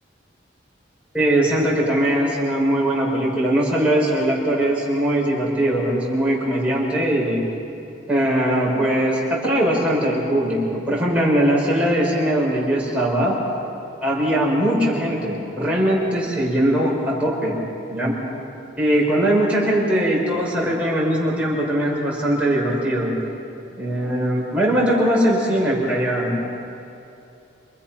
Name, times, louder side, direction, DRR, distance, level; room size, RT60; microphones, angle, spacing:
voice 1, 1.1-7.4 8.1-13.4 14.0-17.6 17.9-18.2 18.8-23.1 23.8-26.4, right 1 dB, 5° right, -6 dB, 6.5 m, -20 dB
29.0 x 26.0 x 6.0 m, 2.7 s
head